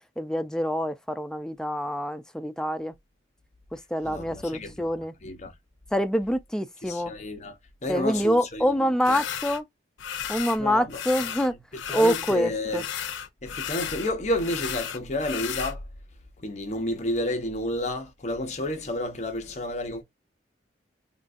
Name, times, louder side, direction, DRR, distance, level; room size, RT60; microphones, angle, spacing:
voice 1, 0.2-2.9 3.7-5.1 5.9-7.1 7.9-9.7 10.3-11.6 11.9-12.8, equal, 5° left, 0.3 m, -26 dB
voice 2, 4.0-4.9 5.2-5.5 6.8-7.5 7.8-8.7 9.1-9.2 10.6-11.0 11.3-11.6 11.9-12.8 13.4-15.8 16.4-20.0, left 1 dB, 35° left, 0.8 m, -30 dB
sound 1, 9.0-9.6 10.0-10.6 10.9-12.4 12.7-15.7, left 9 dB, 80° left, 0.6 m, -34 dB
3.8 x 2.4 x 2.5 m
head